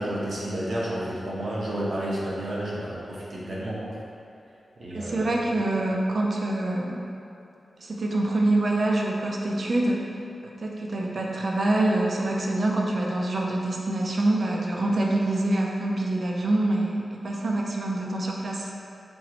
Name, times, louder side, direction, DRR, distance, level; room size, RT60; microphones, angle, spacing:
voice 1, 0.0-3.8 4.8-5.6, right 1 dB, 65° right, -6 dB, 0.9 m, -31 dB
voice 2, 4.9-7.0 7.8-10.1 10.4-18.7, right 2 dB, 50° right, -1 dB, 0.5 m, -25 dB
5.2 x 3.0 x 3.0 m, 2.7 s
wide cardioid pair, 140°, 0 cm